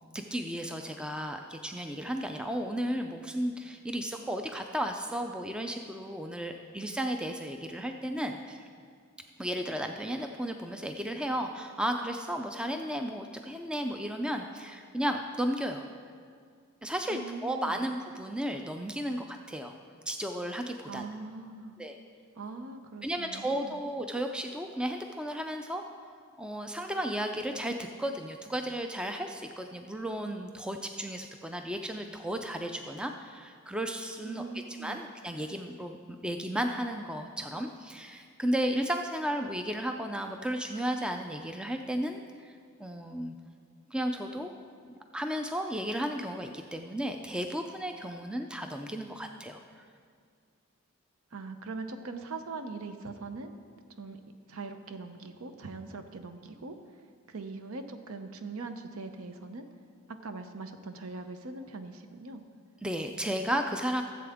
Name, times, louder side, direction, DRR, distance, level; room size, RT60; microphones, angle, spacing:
voice 1, 0.1-8.6 9.4-15.8 16.8-19.7 20.1-21.0 21.8-22.0 23.0-25.8 26.4-34.4 34.8-43.3 43.9-44.5 44.8-49.6 62.8-64.0, equal, 5° right, 5 dB, 0.3 m, -34 dB
voice 2, 17.1-17.9 20.9-21.8 22.4-23.8 34.2-35.0 51.3-53.5 54.0-54.2 54.5-56.7 57.3-59.7 60.2-62.4, right 3 dB, 75° right, 8 dB, 0.7 m, -41 dB
14.0 x 7.6 x 3.5 m, 2.1 s
head